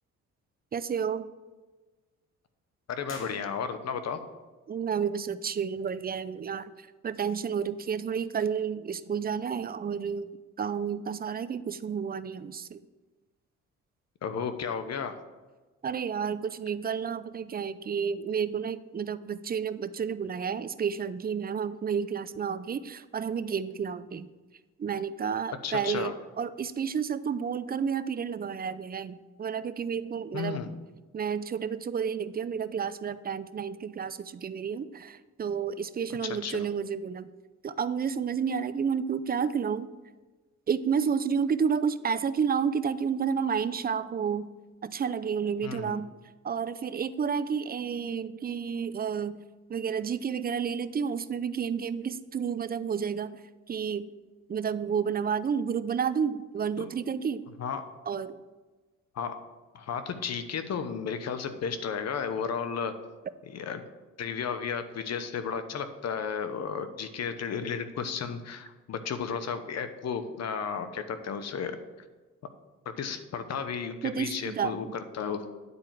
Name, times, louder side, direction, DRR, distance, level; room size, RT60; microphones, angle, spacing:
voice 1, 0.7-1.3 4.7-10.3 10.6-12.8 15.8-24.3 24.8-30.6 31.1-37.3 37.6-39.9 40.7-44.5 44.8-46.1 46.4-49.4 49.7-53.3 53.7-54.1 54.5-57.4 58.1-58.4 74.0-74.9, right 7 dB, 30° right, 14 dB, 0.5 m, -31 dB
voice 2, 2.9-4.2 14.2-15.1 25.6-26.1 30.3-30.7 36.2-36.7 45.6-46.0 56.8-56.9 57.6-57.9 59.1-59.4 59.7-62.9 63.5-63.8 64.2-71.8 73.0-75.5, left 6 dB, 60° left, 9 dB, 1.0 m, -33 dB
sound 1, 3.0-4.1, left 2 dB, 40° left, 2.5 m, -48 dB
9.7 x 4.4 x 7.5 m, 1.3 s
cardioid pair, 90°, 30 cm